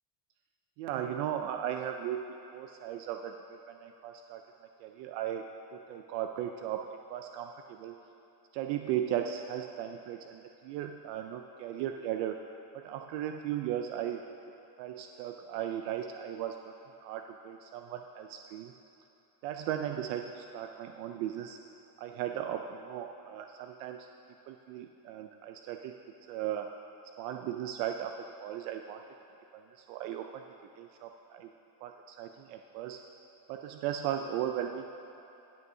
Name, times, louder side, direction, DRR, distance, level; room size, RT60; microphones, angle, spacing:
voice 1, 0.8-4.4 4.8-5.4 5.7-8.0 8.5-12.4 12.8-14.2 14.8-16.7 17.0-18.7 19.4-21.6 22.0-24.1 24.5-25.9 26.3-26.7 27.2-29.0 29.7-30.4 30.8-31.5 31.8-33.0 33.5-35.0, right 10 dB, 70° right, 5 dB, 0.6 m, -37 dB
16.0 x 8.0 x 2.7 m, 3.0 s
cardioid pair, 175°, 48 cm